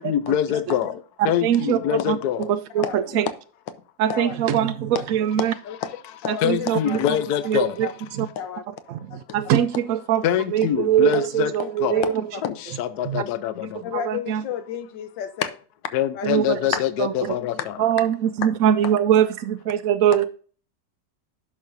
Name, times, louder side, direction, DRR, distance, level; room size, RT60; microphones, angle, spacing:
voice 1, 0.0-2.5 6.4-7.9 10.2-11.5 11.8-12.0 12.4-13.9 15.9-17.9, left 10 dB, 70° left, 1.2 m, -25 dB
voice 2, 1.2-1.8 2.1-3.3 4.0-5.5 6.3-7.0 7.4-8.3 8.9-10.3 10.5-12.0 13.0-13.2 13.9-14.4 16.2-17.1 17.8-20.3, right 10 dB, 70° right, 0.8 m, -22 dB
voice 3, 2.8-3.3 4.1-4.4 4.9-5.0 5.6-5.9 6.2-7.0 7.8-7.9 8.4-8.6 9.6-9.7 11.1-11.3 11.6-12.4 13.2-13.3 13.8-15.6 16.1-16.3 16.7-16.8, left 9 dB, 85° left, 1.6 m, -30 dB
11.0 x 6.4 x 2.6 m
omnidirectional pair, 1.9 m